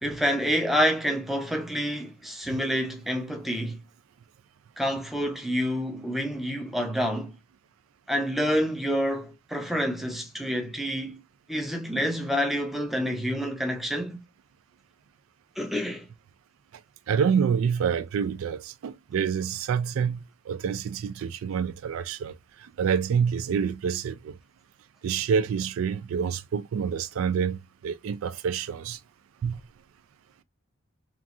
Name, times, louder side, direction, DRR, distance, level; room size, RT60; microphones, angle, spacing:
voice 1, 0.0-3.8 4.8-7.4 8.1-11.2 11.5-14.2 15.6-16.1, equal, ahead, 0.5 m, -28 dB
voice 2, 17.1-20.2 20.5-24.4 25.0-29.0 29.4-29.6, right 7 dB, 80° right, 0.3 m, -27 dB
3.0 x 2.3 x 2.4 m
head